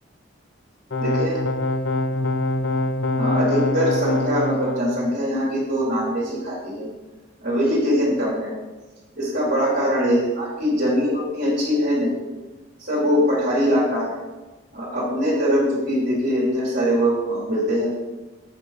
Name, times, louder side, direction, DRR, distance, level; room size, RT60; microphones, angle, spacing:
sound 1, 0.9-4.8, left 2 dB, 75° left, 0.8 m, -24 dB
voice 1, 1.0-1.4 3.2-6.9 7.4-8.5 9.2-12.2 12.8-14.2 14.7-17.9, equal, 55° right, -10 dB, 3.1 m, -22 dB
9.0 x 5.3 x 5.4 m, 1.2 s
head